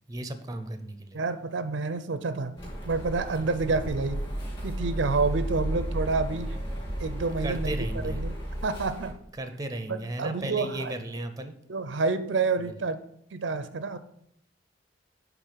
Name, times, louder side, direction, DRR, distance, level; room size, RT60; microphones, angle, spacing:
voice 1, 0.1-1.2 7.4-8.2 9.4-11.6 12.7-12.8, right 1 dB, 20° right, 8 dB, 0.6 m, -35 dB
voice 2, 1.1-2.6 2.8-4.2 4.6-6.6 7.0-7.8 8.0-8.3 8.6-9.1 9.9-10.9 11.7-13.0 13.3-14.0, right 4 dB, 75° right, 11 dB, 0.5 m, -28 dB
sound 1, 2.6-9.1, equal, 30° left, 2.6 m, -33 dB
8.2 x 3.6 x 5.7 m, 0.72 s
head